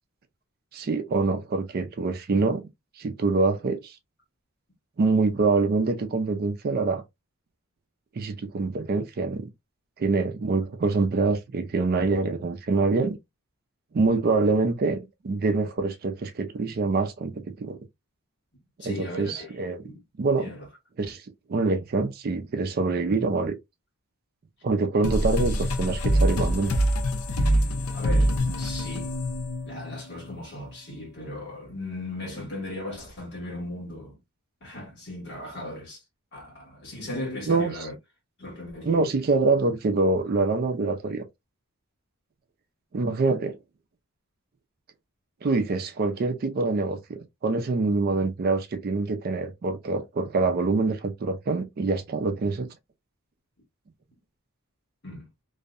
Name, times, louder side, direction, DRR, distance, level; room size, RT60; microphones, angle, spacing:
voice 1, 0.7-2.6 3.0-3.9 5.0-7.0 8.2-9.5 10.0-13.2 13.9-15.0 15.2-17.8 18.8-19.9 20.2-20.5 21.0-21.2 21.5-23.5 24.6-26.8 37.5-37.8 38.8-41.2 42.9-43.6 45.4-52.7, right 3 dB, 45° right, 0.4 m, -25 dB
voice 2, 18.8-19.5 19.8-20.0 20.4-20.6 27.9-29.2 29.6-34.2 34.6-36.0 36.3-37.9 38.4-39.0 55.0-55.2, left 2 dB, 55° left, 1.4 m, -37 dB
sound 1, 25.0-30.3, equal, 85° left, 0.6 m, -25 dB
2.6 x 2.1 x 2.4 m
head